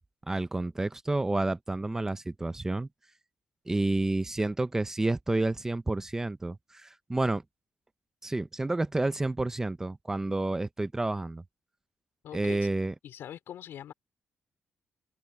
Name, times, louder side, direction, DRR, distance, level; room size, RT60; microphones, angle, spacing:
voice 1, 0.3-2.9 3.7-7.4 8.2-11.4 12.3-12.9, right 2 dB, 10° right, 0.6 m, -30 dB
voice 2, 12.2-12.7 13.0-13.9, left 10 dB, 75° left, 4.0 m, -42 dB
cardioid pair, 160°, 4 cm